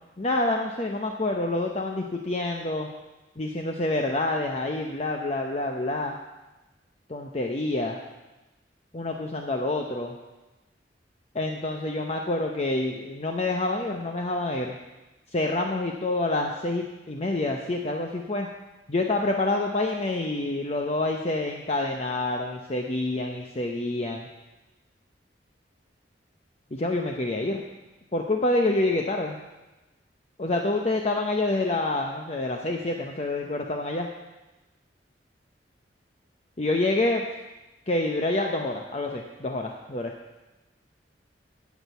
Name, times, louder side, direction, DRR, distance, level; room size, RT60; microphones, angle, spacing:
voice 1, 0.2-2.9 3.4-6.2 7.1-8.0 8.9-10.1 11.3-14.8 15.3-18.5 18.9-24.3 26.7-27.6 28.1-29.4 30.4-34.1 36.6-37.3 37.9-40.1, left 2 dB, 35° left, 2 dB, 0.8 m, -27 dB
9.9 x 8.3 x 8.1 m, 1.1 s
head